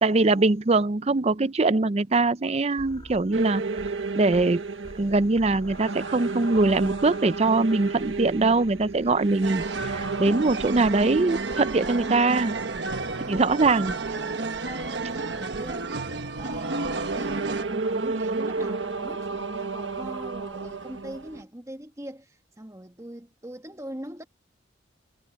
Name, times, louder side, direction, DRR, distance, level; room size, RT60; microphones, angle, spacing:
voice 1, 0.0-3.6 4.1-4.6 5.0-12.5 13.3-14.0, right 3 dB, 35° right, 0.5 m, -22 dB
sound 1, 2.8-4.0 4.3-4.6 4.8-9.6, left 1 dB, 25° left, 2.2 m, -47 dB
sound 2, 3.3-21.4, right 3 dB, 80° right, 1.4 m, -33 dB
sound 3, 9.4-17.6, right 3 dB, 60° right, 1.3 m, -32 dB
voice 2, 13.0-24.3, right 1 dB, 15° right, 1.3 m, -42 dB
head